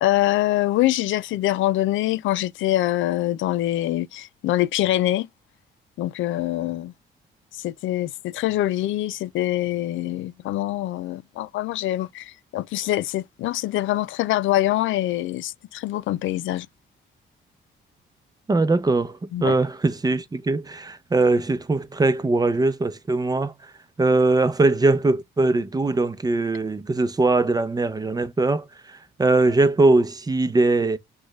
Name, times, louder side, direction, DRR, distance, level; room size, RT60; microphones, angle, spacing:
voice 1, 0.0-5.3 6.0-6.9 7.6-16.7 19.3-19.5, left 14 dB, 80° left, 0.5 m, -24 dB
voice 2, 18.5-23.5 24.0-31.0, right 2 dB, 20° right, 0.7 m, -21 dB
6.2 x 2.4 x 3.1 m
cardioid pair, 90°, 20 cm